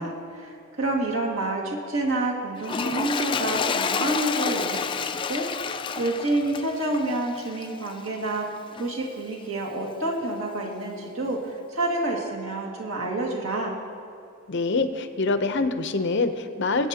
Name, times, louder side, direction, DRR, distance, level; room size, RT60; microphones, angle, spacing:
voice 1, 0.0-5.5 6.0-8.5 8.8-13.8, right 2 dB, 90° right, -2 dB, 2.1 m, -28 dB
Toilet flush, 2.6-8.1 8.8-8.9, left 5 dB, 25° left, 0.3 m, -29 dB
voice 2, 14.5-16.9, left 3 dB, 60° left, 9 dB, 0.7 m, -25 dB
23.0 x 8.3 x 2.9 m, 2.4 s
head